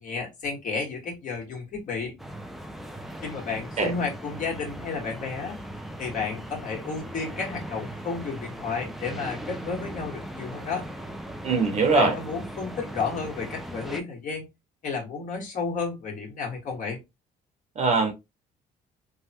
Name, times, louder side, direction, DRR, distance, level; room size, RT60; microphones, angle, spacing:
voice 1, 0.0-2.1 3.2-5.6 6.0-10.8 11.9-14.4 14.8-17.0, left 4 dB, 50° left, 1.6 m, -32 dB
sound 1, 2.2-14.0, right 1 dB, ahead, 0.5 m, -39 dB
voice 2, 11.4-12.2 17.7-18.1, right 4 dB, 40° right, 1.0 m, -22 dB
3.3 x 2.2 x 2.8 m
cardioid pair, 110°, 17 cm